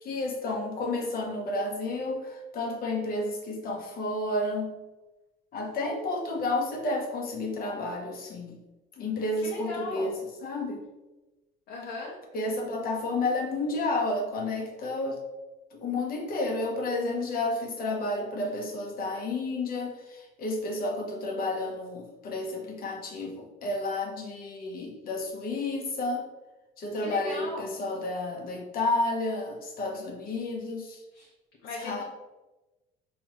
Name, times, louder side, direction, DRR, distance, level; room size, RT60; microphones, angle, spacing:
voice 1, 0.0-4.8 5.5-8.6 9.0-10.1 10.4-10.8 12.3-15.2 15.7-26.3 26.8-31.0 31.8-32.0, left 2 dB, 60° left, 2 dB, 1.0 m, -31 dB
voice 2, 9.4-10.1 11.7-12.1 26.9-27.8 31.1-31.3 31.6-32.0, left 2 dB, 85° left, -4 dB, 1.1 m, -38 dB
5.1 x 3.0 x 3.1 m, 1.1 s
cardioid pair, 110°, 17 cm